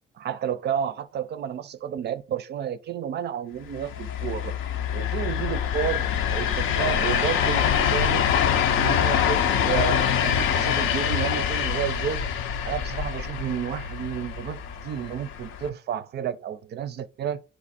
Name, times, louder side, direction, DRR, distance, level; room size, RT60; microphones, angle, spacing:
voice 1, 0.2-4.5 4.9-8.3 8.7-12.2 12.6-17.4, right 9 dB, 55° right, 0.4 m, -31 dB
sound 1, 3.7-15.7, left 8 dB, 80° left, 0.5 m, -25 dB
4.5 x 2.5 x 4.1 m
cardioid pair, 90°, 20 cm